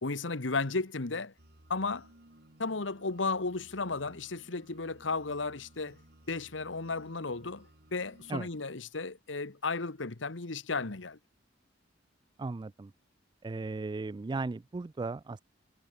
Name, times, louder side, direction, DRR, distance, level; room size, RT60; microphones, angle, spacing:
voice 1, 0.0-1.3 1.7-2.1 2.6-6.0 6.3-11.2, left 3 dB, 80° left, 1.4 m, -34 dB
sound 1, 1.4-8.6, right 1 dB, 60° right, 3.9 m, -59 dB
voice 2, 12.4-12.9 13.4-15.4, right 3 dB, 25° right, 0.3 m, -36 dB
head